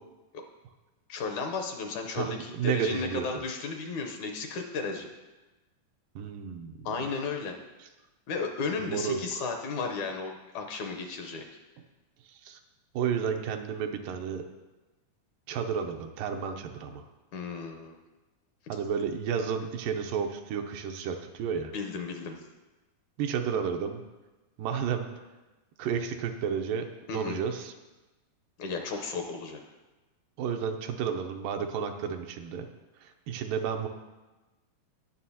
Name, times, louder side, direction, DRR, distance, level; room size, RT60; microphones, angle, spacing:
voice 1, 1.1-5.1 6.9-7.6 8.3-11.5 17.3-18.0 21.7-22.4 27.1-27.4 28.6-29.6, left 4 dB, 75° left, 3 dB, 2.0 m, -34 dB
voice 2, 2.1-3.3 6.2-6.8 8.8-9.5 12.3-12.6 12.9-14.4 15.5-17.1 18.7-21.7 23.2-24.0 24.6-25.1 25.8-26.9 27.1-27.7 30.4-32.7 33.0-33.9, right 7 dB, 85° right, 5 dB, 2.4 m, -32 dB
18.5 x 6.7 x 2.8 m, 1.1 s
omnidirectional pair, 3.9 m